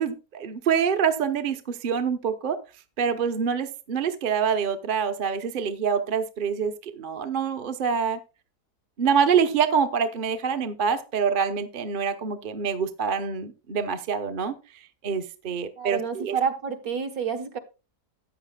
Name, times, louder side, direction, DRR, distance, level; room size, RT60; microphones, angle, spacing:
voice 1, 0.0-2.6 3.0-8.2 9.0-14.5 15.0-16.4, right 6 dB, 40° right, 0.9 m, -26 dB
voice 2, 15.8-17.6, right 6 dB, 60° right, 1.7 m, -29 dB
14.0 x 9.0 x 2.3 m
omnidirectional pair, 1.7 m